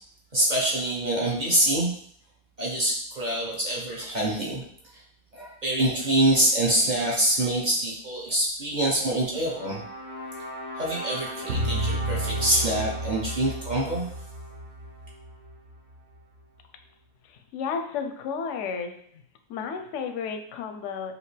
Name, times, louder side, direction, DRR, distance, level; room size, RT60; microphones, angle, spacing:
voice 1, 0.3-1.9 2.6-4.6 5.3-9.8 10.7-14.0, right 1 dB, 40° right, -3 dB, 0.6 m, -25 dB
sound 1, 9.4-15.6, right 1 dB, 85° right, 2.2 m, -39 dB
sound 2, 11.5-16.0, right 1 dB, 60° right, 0.9 m, -32 dB
voice 2, 17.2-19.2 19.5-21.1, left 6 dB, 65° left, 6 dB, 0.7 m, -33 dB
5.1 x 2.7 x 3.2 m, 0.62 s
omnidirectional pair, 1.6 m